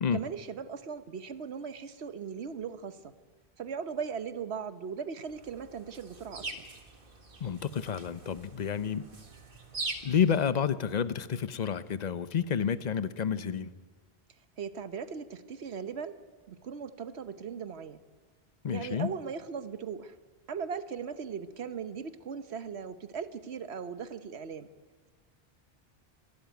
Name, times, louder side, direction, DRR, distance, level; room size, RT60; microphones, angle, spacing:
voice 1, 0.1-3.1 3.6-6.7 14.6-16.2 16.5-18.0 18.7-20.2 20.5-24.7, right 6 dB, 90° right, 11 dB, 1.3 m, -38 dB
sound 1, 5.3-10.4, right 3 dB, 55° right, 2.0 m, -43 dB
voice 2, 7.4-9.0 10.0-13.7 18.6-19.1, left 7 dB, 45° left, 13 dB, 0.8 m, -29 dB
26.0 x 12.5 x 9.3 m, 1.4 s
omnidirectional pair, 1.1 m